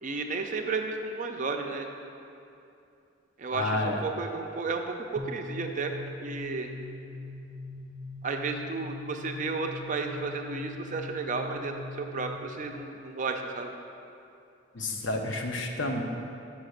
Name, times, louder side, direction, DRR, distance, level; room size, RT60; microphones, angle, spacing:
voice 1, 0.0-1.9 3.4-4.8 5.1-5.9 6.2-6.7 8.2-13.7, right 4 dB, 40° right, 4 dB, 0.5 m, -33 dB
voice 2, 3.5-4.0 14.7-16.0, left 2 dB, 65° left, 2 dB, 0.8 m, -30 dB
sound 1, 5.2-12.7, left 2 dB, 20° left, 0.5 m, -42 dB
5.9 x 5.7 x 6.4 m, 2.6 s
head